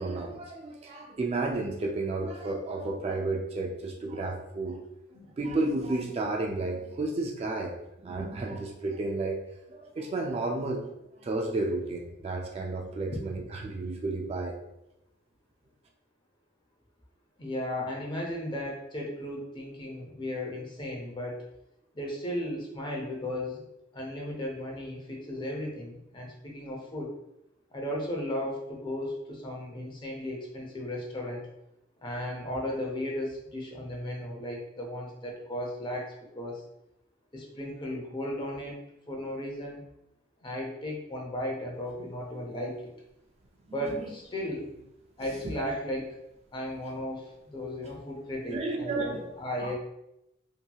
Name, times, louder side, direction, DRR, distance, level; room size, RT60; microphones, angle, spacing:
voice 1, 0.0-4.8 5.4-7.7 8.0-9.4 9.7-10.8 11.2-14.6 45.4-45.5 48.5-49.2 49.6-49.7, right 2 dB, 35° right, 1 dB, 0.3 m, -32 dB
voice 2, 17.4-21.4 21.9-23.7 23.9-27.1 27.7-31.4 32.0-36.6 37.3-38.8 39.1-39.8 40.4-42.8 43.7-44.7 45.2-46.1 46.5-49.7, left 1 dB, 25° left, -1 dB, 0.6 m, -35 dB
2.8 x 2.8 x 2.3 m, 0.85 s
head